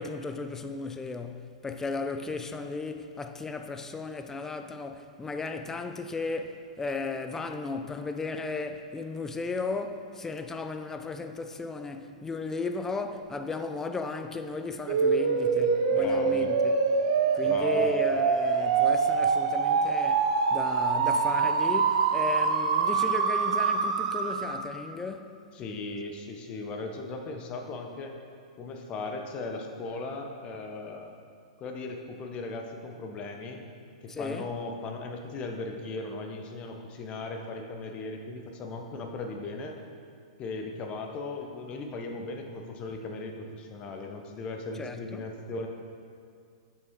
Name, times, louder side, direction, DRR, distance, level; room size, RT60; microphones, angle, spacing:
voice 1, 0.0-16.7 17.3-25.4 34.1-34.5 44.8-45.2, left 3 dB, 10° left, 0.4 m, -35 dB
sound 1, 14.9-24.7, right 5 dB, 60° right, 0.6 m, -25 dB
voice 2, 15.9-16.5 17.4-17.9 25.5-28.1 28.6-31.1 31.6-33.6 34.0-39.7 40.4-45.7, left 3 dB, 30° left, 0.8 m, -37 dB
7.4 x 5.5 x 3.6 m
hypercardioid pair, 120°, 4 cm